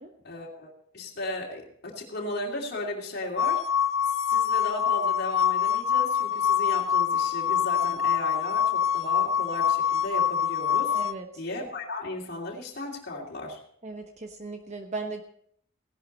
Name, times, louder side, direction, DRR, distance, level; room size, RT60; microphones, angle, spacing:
voice 1, 0.2-3.6 4.0-11.0 11.3-13.6, left 2 dB, 50° left, -3 dB, 2.7 m, -35 dB
sound 1, 3.4-11.1, left 8 dB, 70° left, 0.7 m, -25 dB
voice 2, 10.9-11.3 13.8-15.2, right 3 dB, 35° right, 5 dB, 1.0 m, -36 dB
17.0 x 11.5 x 4.1 m, 0.66 s
head